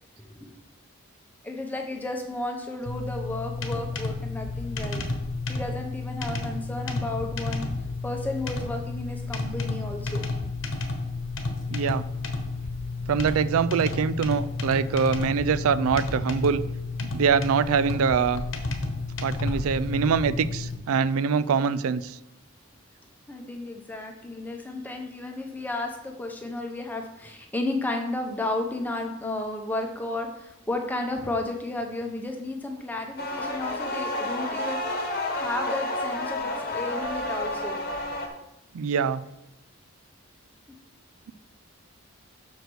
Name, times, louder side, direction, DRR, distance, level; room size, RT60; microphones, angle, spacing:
voice 1, 0.2-0.5 1.4-5.1 5.5-7.7 8.0-10.2 23.3-37.8 40.7-40.8, left 2 dB, 10° left, 2 dB, 0.9 m, -33 dB
sound 1, 2.9-20.8, left 3 dB, 60° left, 1.1 m, -31 dB
voice 2, 11.7-12.0 13.1-16.6 17.1-18.4 19.2-22.2 38.7-39.2, right 6 dB, 80° right, 16 dB, 0.4 m, -24 dB
sound 2, 33.2-38.3, left 1 dB, 45° left, 1.1 m, -30 dB
6.4 x 5.0 x 6.2 m, 0.86 s
head